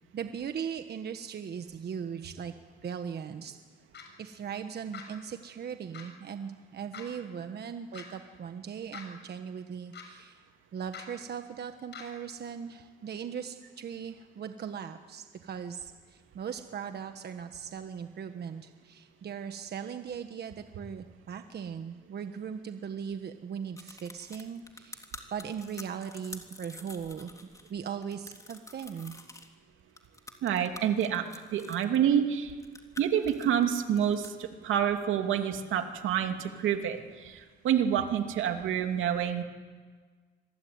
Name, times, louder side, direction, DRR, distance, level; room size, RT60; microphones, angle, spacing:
voice 1, 0.1-2.5 2.8-3.6 4.2-10.4 10.7-27.3 27.7-29.1, right 7 dB, 55° right, 7 dB, 1.4 m, -39 dB
sound 1, 3.9-4.1 4.9-5.1 5.9-6.1 6.9-7.0 7.9-8.0 8.9-9.0 9.9-10.0 10.9-11.0 11.9-12.0, left 7 dB, 60° left, 6.5 m, -43 dB
sound 2, 23.8-27.7 28.0-29.5 30.0-32.0 32.5-34.3, left 2 dB, 15° left, 3.4 m, -47 dB
voice 2, 30.4-31.2 31.5-32.5 33.0-37.0 37.2-39.4, right 9 dB, 85° right, 5 dB, 2.7 m, -28 dB
26.0 x 23.5 x 9.6 m, 1.5 s
cardioid pair, 90°, 20 cm